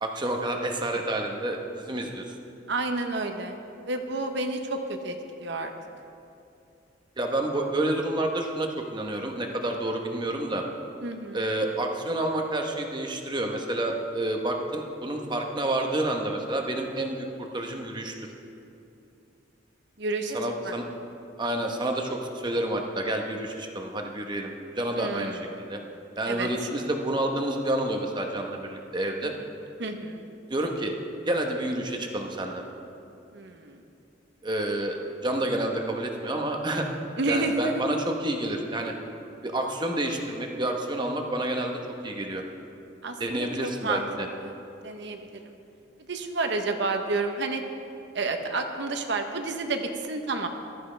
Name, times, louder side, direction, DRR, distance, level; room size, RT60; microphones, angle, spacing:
voice 1, 0.0-2.4 7.2-10.6 11.3-18.1 20.3-20.9 21.4-25.8 26.2-29.4 30.5-30.9 31.3-32.6 34.4-35.0 35.2-36.9 37.3-38.9 39.4-42.4 43.2-44.3, right 1 dB, 25° right, 2 dB, 1.0 m, -29 dB
voice 2, 2.7-3.6 3.8-5.1 5.4-5.7 11.0-11.4 20.0-20.4 20.6-20.7 24.9-25.4 26.3-26.5 29.2-29.3 29.8-30.3 33.3-33.8 37.2-37.8 43.0-44.0 44.4-44.5 44.8-45.5 46.1-47.6 48.1-50.5, right 3 dB, 65° right, 5 dB, 0.9 m, -30 dB
15.0 x 13.0 x 3.4 m, 2.7 s
head